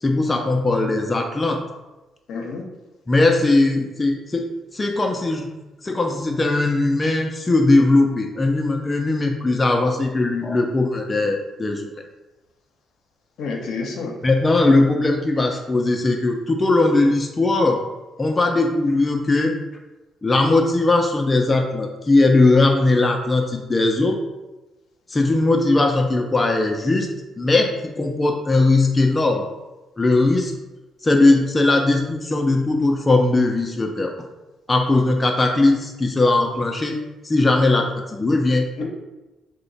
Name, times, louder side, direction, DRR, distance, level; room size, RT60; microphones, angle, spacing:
voice 1, 0.0-1.6 3.1-4.5 4.7-5.5 5.8-11.9 14.2-17.8 18.2-19.6 20.2-24.2 25.1-27.1 27.4-29.5 30.0-30.5 31.0-34.3 34.7-37.0 37.2-38.7, left 2 dB, 20° left, 2 dB, 0.4 m, -19 dB
voice 2, 2.3-2.6 13.4-14.1 38.8-38.9, left 4 dB, 75° left, 1 dB, 0.6 m, -29 dB
2.9 x 2.1 x 3.9 m, 1.1 s
cardioid pair, 90°, 0 cm